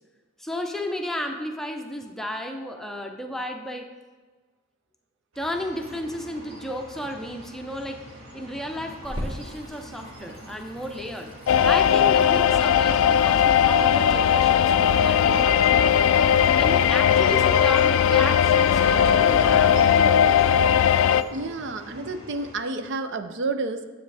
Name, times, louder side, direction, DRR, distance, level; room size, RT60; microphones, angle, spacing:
voice 1, 0.4-3.9 5.4-8.0 8.3-11.3 11.6-16.0 16.5-20.8, left 1 dB, ahead, 3 dB, 0.7 m, -33 dB
sound 1, 5.3-22.6, right 1 dB, 85° right, 2.5 m, -41 dB
Water tap faucet / Sink (filling or washing), 9.0-18.0, equal, 25° right, 1.2 m, -42 dB
sound 2, 11.5-21.2, left 8 dB, 75° left, 0.3 m, -18 dB
voice 2, 21.3-23.9, right 3 dB, 60° right, 9 dB, 0.5 m, -30 dB
9.5 x 7.7 x 3.3 m, 1.4 s
head